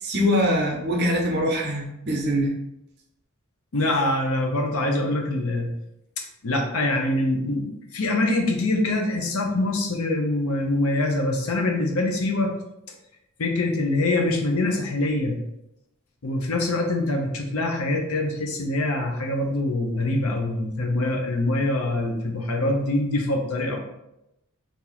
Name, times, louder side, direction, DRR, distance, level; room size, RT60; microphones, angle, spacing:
voice 1, 0.0-2.5, equal, 50° right, 0 dB, 0.7 m, -23 dB
voice 2, 3.7-5.7 6.4-12.5 13.4-15.4 16.2-23.8, left 2 dB, 75° left, 2 dB, 0.7 m, -24 dB
2.9 x 2.6 x 3.9 m, 0.86 s
head